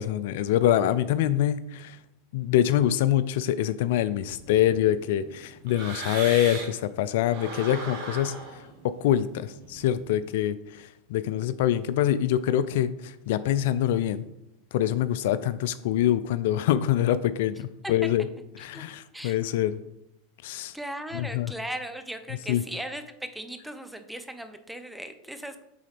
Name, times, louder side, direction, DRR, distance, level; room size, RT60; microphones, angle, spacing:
voice 1, 0.0-2.0 2.3-14.3 14.7-18.3 18.6-19.7 20.4-20.8 21.1-21.5 22.5-22.6, left 11 dB, 65° left, 14 dB, 0.3 m, -25 dB
sound 1, 4.2-6.9 7.2-10.2, right 3 dB, 60° right, 1.8 m, -39 dB
voice 2, 20.7-23.0 23.3-25.6, right 1 dB, 5° right, 8 dB, 0.8 m, -37 dB
9.2 x 3.7 x 3.5 m, 0.84 s
hypercardioid pair, 90°, 0 cm